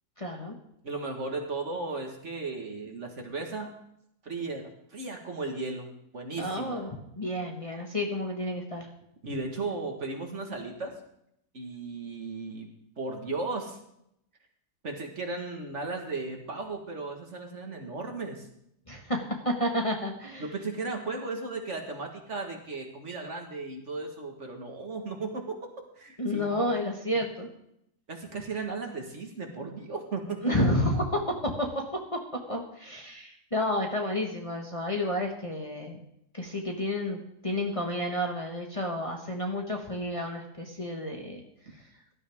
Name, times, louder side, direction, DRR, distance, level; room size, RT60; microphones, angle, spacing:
voice 1, 0.2-0.5 6.4-6.9 7.2-8.9 18.9-20.4 26.2-27.5 30.4-31.7 32.5-36.0 36.3-41.4, left 1 dB, 20° left, 0 dB, 1.5 m, -30 dB
voice 2, 0.8-3.7 4.2-5.9 6.1-6.9 9.2-10.9 11.5-12.7 13.0-13.8 14.8-18.5 20.4-26.7 28.1-30.4, right 3 dB, 50° right, 3 dB, 1.9 m, -36 dB
17.5 x 12.0 x 3.6 m, 0.74 s
omnidirectional pair, 1.6 m